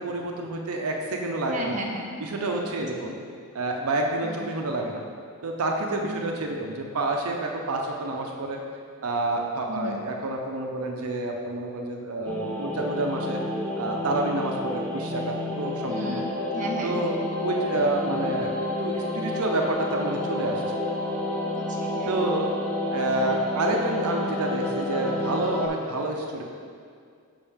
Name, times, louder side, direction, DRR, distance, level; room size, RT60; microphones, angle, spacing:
voice 1, 0.0-1.8 2.2-3.2 3.5-5.0 5.4-8.6 9.0-13.4 13.8-16.2 16.8-20.6 22.1-22.5 22.9-26.4, right 2 dB, 80° right, 1 dB, 0.6 m, -28 dB
voice 2, 1.5-2.1 2.8-3.1 4.2-4.5 6.0-6.4 9.7-10.0 15.8-17.0 21.4-22.2, right 1 dB, 35° right, -2 dB, 0.7 m, -35 dB
sound 1, 12.2-25.7, left 1 dB, 5° left, 0.6 m, -29 dB
7.1 x 5.2 x 3.5 m, 2.2 s
head